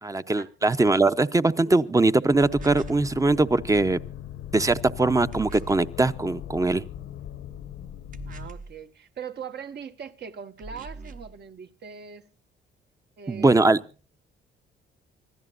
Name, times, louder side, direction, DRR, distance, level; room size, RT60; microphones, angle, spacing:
voice 1, 0.0-4.0 4.5-6.8 13.3-13.8, right 2 dB, 15° right, 0.8 m, -21 dB
sound 1, 2.3-8.5, left 11 dB, 90° left, 1.2 m, -39 dB
sound 2, 2.5-3.1 5.3-5.9 8.1-8.8 10.6-11.3, right 3 dB, 40° right, 1.1 m, -41 dB
voice 2, 8.2-12.3 13.2-13.8, right 7 dB, 60° right, 1.5 m, -40 dB
25.5 x 15.5 x 2.6 m
cardioid pair, 90°, 20 cm